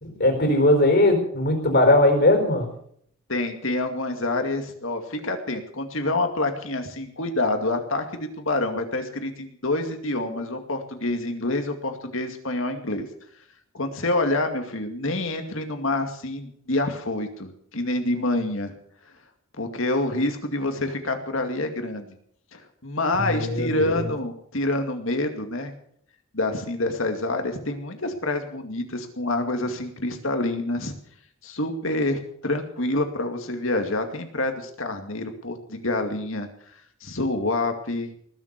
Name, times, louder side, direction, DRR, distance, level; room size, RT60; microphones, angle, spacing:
voice 1, 0.0-2.7 23.1-24.1, left 1 dB, 55° left, 3 dB, 4.4 m, -20 dB
voice 2, 3.3-8.1 8.4-13.1 13.7-18.7 19.6-22.2 22.5-25.7 26.3-30.9 31.4-36.5 37.0-38.1, left 2 dB, 70° left, 5 dB, 2.4 m, -27 dB
19.5 x 7.5 x 8.2 m, 0.66 s
head